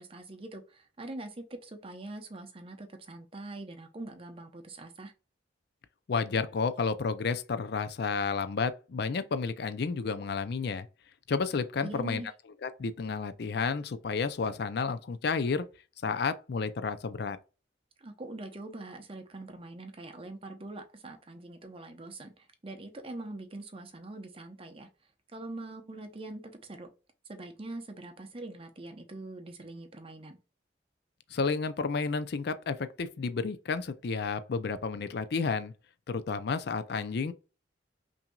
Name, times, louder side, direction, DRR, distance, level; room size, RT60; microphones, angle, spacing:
voice 1, 0.0-5.1 11.8-12.3 18.0-24.9 25.3-26.9 27.3-30.4, right 2 dB, 30° right, 0.7 m, -43 dB
voice 2, 6.1-10.9 11.3-12.2 12.6-15.7 16.0-17.4 31.3-35.7 36.1-37.3, left 5 dB, 60° left, 0.4 m, -31 dB
5.7 x 2.7 x 2.3 m
head